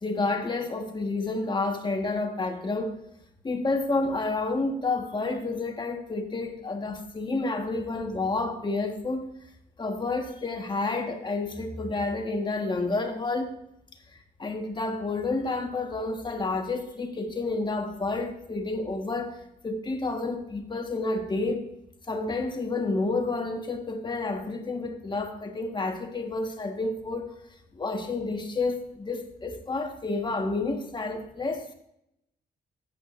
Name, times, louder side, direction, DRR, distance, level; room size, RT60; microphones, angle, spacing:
voice 1, 0.0-2.9 3.4-9.3 9.8-13.5 14.1-19.4 19.6-21.6 22.1-27.3 27.7-31.7, left 3 dB, 25° left, 4 dB, 1.5 m, -30 dB
14.0 x 8.5 x 2.6 m, 0.80 s
cardioid pair, 105°, 17 cm